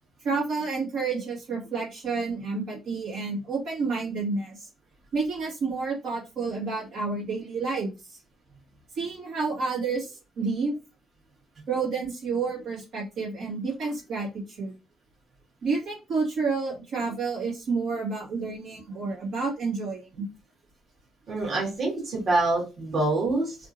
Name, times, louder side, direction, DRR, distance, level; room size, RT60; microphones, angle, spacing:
voice 1, 0.2-4.7 5.1-8.2 9.0-10.7 11.7-14.7 15.6-20.3, right 4 dB, 75° right, -5 dB, 1.9 m, -30 dB
voice 2, 21.3-23.6, right 2 dB, 55° right, -3 dB, 1.9 m, -26 dB
3.4 x 2.6 x 2.8 m, 0.28 s
cardioid pair, 90°, 0 cm